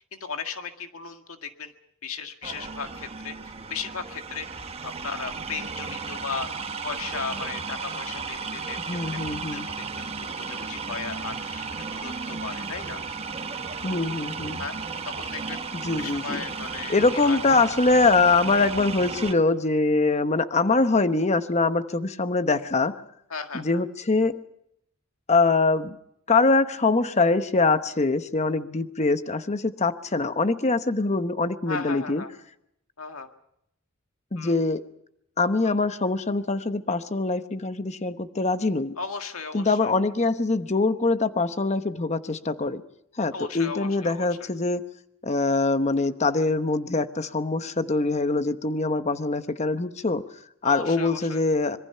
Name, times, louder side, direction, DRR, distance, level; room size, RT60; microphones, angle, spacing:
voice 1, 0.1-1.7 2.0-4.5 4.8-6.5 6.8-8.8 9.3-13.0 14.6-14.7 15.1-15.6 16.0-17.4 23.3-23.8 31.7-32.3 33.0-33.3 34.4-34.5 35.6-35.7 39.0-39.9 43.3-44.5 50.6-51.4, left 5 dB, 85° left, 6 dB, 1.8 m, -36 dB
sound 1, 2.4-19.3, right 4 dB, 30° right, 1.2 m, -34 dB
voice 2, 8.9-9.7 13.8-14.6 15.7-16.4 16.9-22.9 23.5-24.4 25.3-26.0 26.3-32.2 34.3-34.8 35.4-38.9 39.5-42.8 43.1-44.8 45.2-51.8, left 3 dB, 35° left, 10 dB, 1.0 m, -23 dB
25.5 x 22.5 x 5.7 m, 0.76 s
head